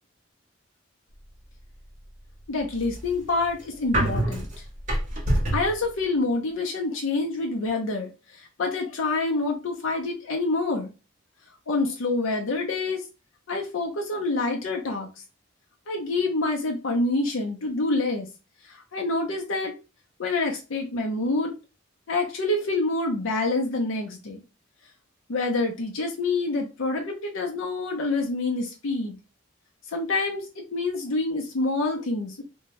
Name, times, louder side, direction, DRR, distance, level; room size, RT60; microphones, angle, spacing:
voice 1, 2.5-4.5 5.5-8.1 8.4-10.9 11.7-13.0 13.5-15.1 15.9-18.3 18.9-19.7 20.2-21.5 22.1-24.4 25.3-29.2 29.9-32.4, left 2 dB, 80° left, 1 dB, 0.6 m, -27 dB
sound 1, 2.6-5.8, right 1 dB, 40° right, 1.0 m, -26 dB
2.6 x 2.2 x 3.0 m, 0.30 s
head